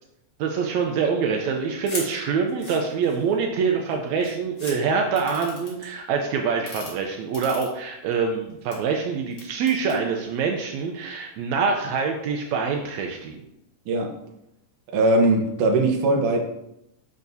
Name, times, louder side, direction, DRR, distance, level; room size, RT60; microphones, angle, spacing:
voice 1, 0.4-13.4, right 5 dB, 90° right, 2 dB, 1.6 m, -25 dB
sound 1, 1.8-2.1 2.5-3.3 3.9-4.0 4.2-4.7 5.2-5.9 6.5-6.9 7.3-8.1 8.5-8.8 9.3-10.0, left 2 dB, 35° left, 1.7 m, -36 dB
voice 2, 14.9-16.4, right 2 dB, 70° right, 1 dB, 2.4 m, -20 dB
9.0 x 6.1 x 2.7 m, 0.84 s
omnidirectional pair, 4.0 m